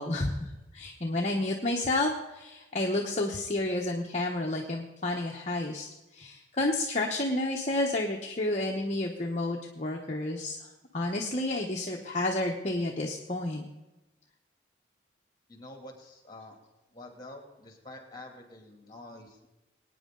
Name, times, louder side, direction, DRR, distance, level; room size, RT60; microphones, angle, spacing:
voice 1, 0.0-5.9 6.1-10.7 10.9-13.6, left 2 dB, 40° left, 0 dB, 1.0 m, -30 dB
voice 2, 15.5-16.5 16.9-19.5, left 1 dB, 20° left, 2 dB, 2.6 m, -47 dB
23.0 x 9.4 x 3.8 m, 1.0 s
head